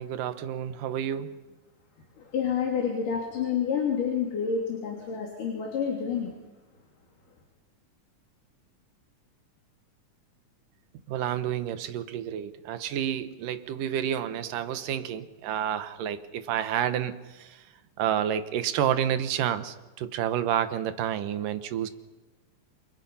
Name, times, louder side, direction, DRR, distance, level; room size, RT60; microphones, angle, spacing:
voice 1, 0.0-1.4 11.1-17.6 18.0-21.9, right 10 dB, 85° right, 10 dB, 2.8 m, -29 dB
voice 2, 2.3-6.3, left 7 dB, 75° left, 0 dB, 4.7 m, -28 dB
28.0 x 27.0 x 5.6 m, 1.2 s
omnidirectional pair, 3.7 m